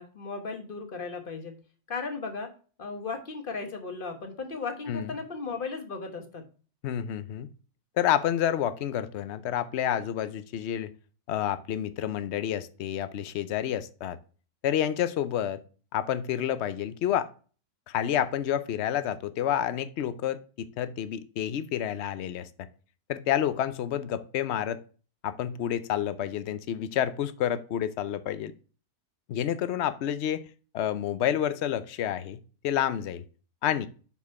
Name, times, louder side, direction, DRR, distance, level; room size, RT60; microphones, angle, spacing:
voice 1, 0.0-1.6 1.9-2.5 2.8-6.5, left 4 dB, 40° left, 1.4 m, -36 dB
voice 2, 6.8-7.5 8.0-10.9 11.3-14.2 14.6-15.6 15.9-17.3 17.9-22.7 23.1-24.8 25.2-28.5 29.3-30.4 30.7-33.2 33.6-33.9, left 10 dB, 60° left, 0.8 m, -29 dB
6.3 x 5.9 x 4.6 m
omnidirectional pair, 1.6 m